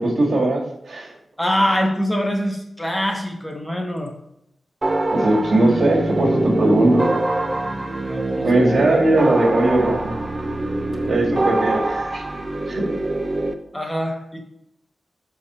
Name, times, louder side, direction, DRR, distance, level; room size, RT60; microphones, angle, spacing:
voice 1, 0.2-0.6 0.9-1.1 5.1-7.0 8.4-10.1 11.0-12.2 12.7-12.9, right 2 dB, 70° right, -3 dB, 1.7 m, -19 dB
voice 2, 1.4-4.1 8.0-8.7 13.7-14.4, equal, 5° left, 2 dB, 0.7 m, -24 dB
sound 1, 4.8-13.5, right 2 dB, 25° right, 0.4 m, -24 dB
6.0 x 4.7 x 4.1 m, 0.80 s
wide cardioid pair, 150°, 0 cm